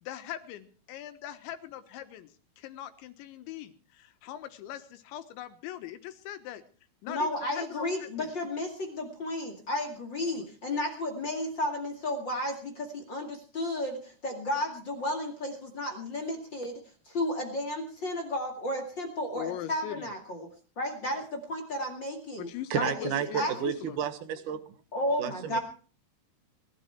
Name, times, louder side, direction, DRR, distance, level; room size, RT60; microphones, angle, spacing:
voice 1, 0.0-6.6 7.0-8.3 10.3-10.4 19.4-20.1 22.4-24.0, left 12 dB, 90° left, 10 dB, 3.7 m, -41 dB
voice 2, 7.1-20.5 20.8-23.5 24.9-25.6, left 1 dB, 35° left, 3 dB, 2.0 m, -33 dB
voice 3, 22.7-24.6 25.2-25.6, right 9 dB, 60° right, 9 dB, 2.4 m, -31 dB
21.5 x 12.0 x 4.6 m, 0.39 s
omnidirectional pair, 5.1 m